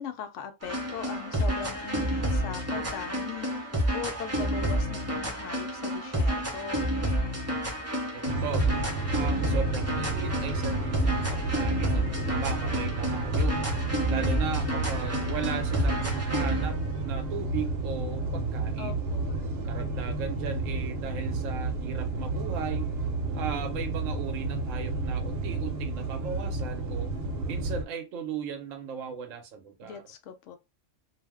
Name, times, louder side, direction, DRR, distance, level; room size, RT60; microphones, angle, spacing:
voice 1, 0.0-3.7 3.9-6.9 18.8-19.3 29.8-30.6, left 8 dB, 75° left, 0.9 m, -39 dB
sound 1, 0.6-16.7, equal, 20° right, 0.5 m, -29 dB
voice 2, 8.1-8.7 9.1-13.6 14.1-19.0 19.6-22.9 23.3-27.1 27.5-30.0, right 7 dB, 85° right, 1.0 m, -37 dB
sound 2, 8.2-27.8, right 2 dB, 60° right, 0.8 m, -31 dB
2.5 x 2.1 x 3.4 m
omnidirectional pair, 1.3 m